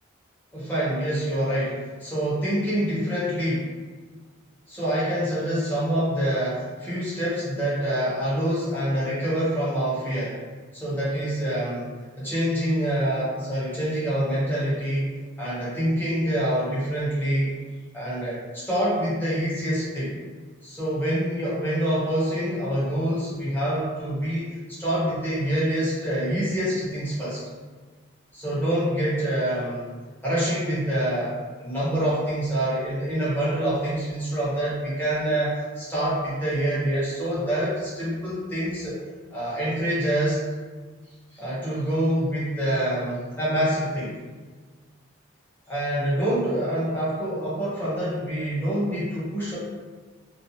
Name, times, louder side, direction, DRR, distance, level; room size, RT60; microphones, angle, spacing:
voice 1, 0.5-3.7 4.7-10.4 10.7-11.9 12.2-15.1 15.4-17.5 17.9-20.2 20.6-27.4 28.3-29.9 30.2-39.0 39.3-40.4 41.3-44.2 45.7-49.6, right 1 dB, 10° left, -9 dB, 0.9 m, -26 dB
2.4 x 2.1 x 2.8 m, 1.4 s
head